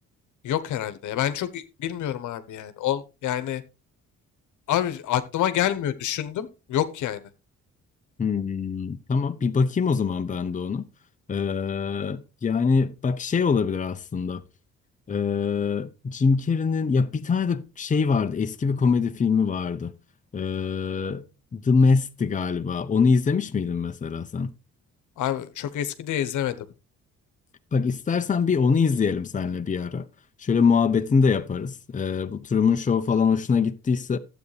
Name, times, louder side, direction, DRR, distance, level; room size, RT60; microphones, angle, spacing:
voice 1, 0.4-3.6 4.7-7.2 25.2-26.7, left 11 dB, 75° left, 1.1 m, -27 dB
voice 2, 8.2-10.9 11.3-14.4 15.1-19.9 20.3-21.2 21.5-24.5 27.7-30.0 30.4-34.2, left 5 dB, 25° left, 0.7 m, -23 dB
12.0 x 8.2 x 3.3 m
cardioid pair, 90°, 30 cm